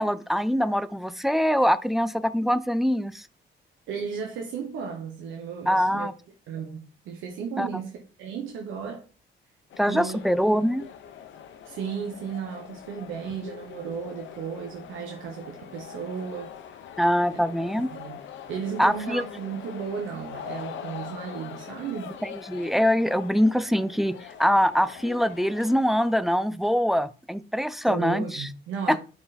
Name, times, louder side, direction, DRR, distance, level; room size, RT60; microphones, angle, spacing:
voice 1, 0.0-3.2 5.7-6.1 7.6-7.7 9.8-10.9 17.0-17.9 18.8-19.2 22.3-28.5 28.9-29.0, equal, ahead, 0.4 m, -23 dB
voice 2, 3.9-6.1 6.5-6.8 7.0-9.0 9.9-10.2 11.6-16.5 17.3-17.4 17.9-18.2 18.5-22.2 27.8-29.0, right 6 dB, 85° right, 1.1 m, -34 dB
sound 1, 9.7-26.1, left 8 dB, 70° left, 0.9 m, -43 dB
5.7 x 4.3 x 4.2 m
cardioid pair, 90°, 20 cm